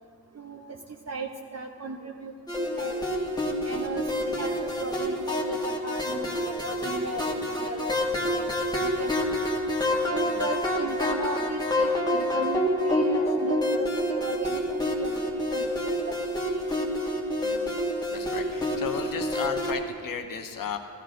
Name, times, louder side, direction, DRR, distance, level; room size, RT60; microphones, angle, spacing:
voice 1, 1.1-3.1 3.4-4.5 4.8-9.4 10.1-16.4, right 3 dB, 40° right, 2 dB, 0.7 m, -37 dB
sound 1, 2.5-19.7, left 1 dB, 10° left, 1.4 m, -28 dB
voice 2, 18.1-20.8, left 7 dB, 55° left, 6 dB, 0.9 m, -35 dB
15.0 x 12.5 x 2.5 m, 2.2 s
cardioid pair, 85°, 41 cm